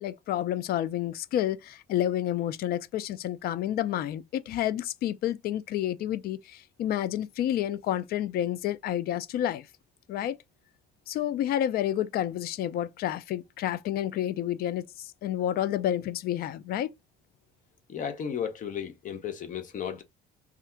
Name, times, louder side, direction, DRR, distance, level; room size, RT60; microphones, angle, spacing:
voice 1, 0.0-9.7 10.1-10.4 11.1-16.9, left 11 dB, 65° left, 0.4 m, -30 dB
voice 2, 17.9-20.0, left 8 dB, 50° left, 0.8 m, -34 dB
3.4 x 2.5 x 4.3 m
cardioid pair, 110°, 17 cm